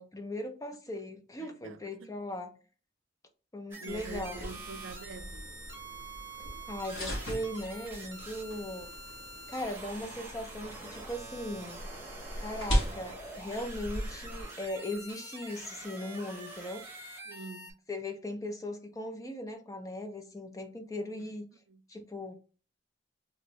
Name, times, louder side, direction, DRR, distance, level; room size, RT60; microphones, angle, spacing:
voice 1, 0.0-2.5 3.5-4.5 6.7-8.9 9.5-11.8 12.4-16.8 17.9-21.5 21.9-22.3, left 1 dB, 20° left, 0.5 m, -38 dB
voice 2, 1.4-2.2 3.8-5.6 12.8-13.0 17.3-17.8 21.2-21.3 21.7-21.8, right 4 dB, 85° right, 0.4 m, -46 dB
sound 1, 3.7-17.7, right 2 dB, 10° right, 0.8 m, -46 dB
sound 2, 3.9-14.4, equal, 85° left, 1.4 m, -38 dB
sound 3, 5.1-7.4, left 1 dB, 45° left, 0.9 m, -62 dB
3.1 x 2.6 x 3.0 m
head